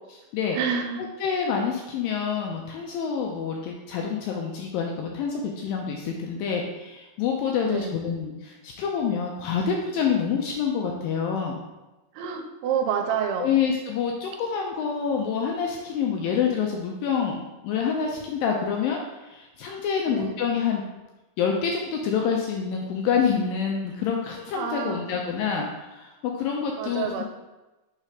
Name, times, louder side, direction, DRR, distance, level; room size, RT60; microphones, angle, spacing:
voice 1, 0.5-1.0 7.6-8.0 12.1-13.5 20.1-20.4 24.5-25.1 26.8-27.2, right 7 dB, 85° right, 5 dB, 2.7 m, -28 dB
voice 2, 1.2-11.6 13.4-20.8 21.4-27.2, left 6 dB, 85° left, 0 dB, 2.1 m, -27 dB
6.3 x 3.2 x 4.9 m, 1.1 s
omnidirectional pair, 4.5 m